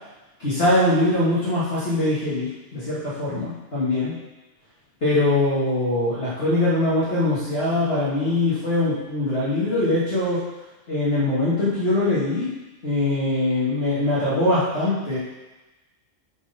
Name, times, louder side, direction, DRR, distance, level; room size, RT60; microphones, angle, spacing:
voice 1, 0.4-4.1 5.0-10.4 10.9-12.5 12.8-15.2, left 2 dB, 55° left, -10 dB, 2.3 m, -22 dB
9.0 x 4.3 x 5.4 m, 1.1 s
omnidirectional pair, 1.3 m